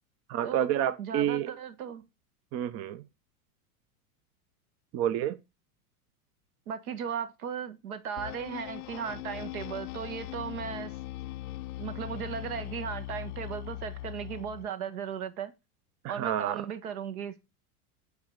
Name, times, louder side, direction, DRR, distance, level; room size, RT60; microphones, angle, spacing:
voice 1, 0.3-1.5 2.5-3.0 4.9-5.4 16.0-16.6, right 10 dB, 35° right, 0.6 m, -29 dB
voice 2, 1.0-2.0 6.7-10.9 11.8-15.5 16.1-17.4, right 7 dB, 70° right, 1.7 m, -36 dB
sound 1, 8.2-14.7, left 15 dB, 70° left, 0.7 m, -40 dB
8.2 x 4.8 x 6.5 m
hypercardioid pair, 105°, 45 cm